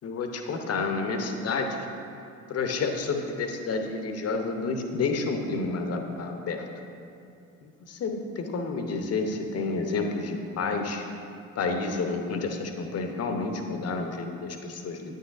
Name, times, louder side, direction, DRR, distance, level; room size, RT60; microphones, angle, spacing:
voice 1, 0.0-1.9 2.5-6.7 7.6-11.1 11.5-15.2, left 4 dB, 40° left, 5 dB, 0.8 m, -30 dB
9.2 x 6.5 x 2.5 m, 2.5 s
figure-of-eight pair, 45°, 40 cm